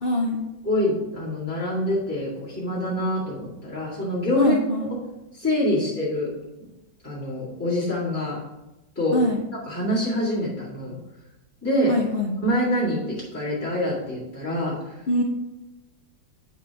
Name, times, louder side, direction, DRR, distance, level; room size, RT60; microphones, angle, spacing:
voice 1, 0.0-0.4 4.4-4.9 9.1-9.4 11.9-12.4 15.1-15.2, left 1 dB, 85° left, -1 dB, 0.5 m, -23 dB
voice 2, 0.6-4.6 5.3-6.3 7.0-8.4 9.0-9.2 9.5-11.0 11.6-11.9 12.4-14.8, left 1 dB, 10° left, -10 dB, 2.0 m, -25 dB
9.2 x 4.1 x 4.6 m, 0.98 s
omnidirectional pair, 2.1 m